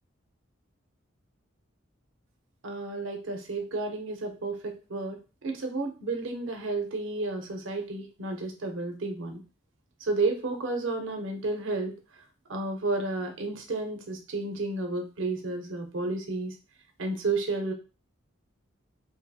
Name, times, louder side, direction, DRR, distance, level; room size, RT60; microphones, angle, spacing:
voice 1, 2.6-9.4 10.0-11.9 12.5-16.5 17.0-17.7, right 3 dB, 75° right, 4 dB, 0.6 m, -32 dB
2.7 x 2.6 x 2.3 m, 0.32 s
head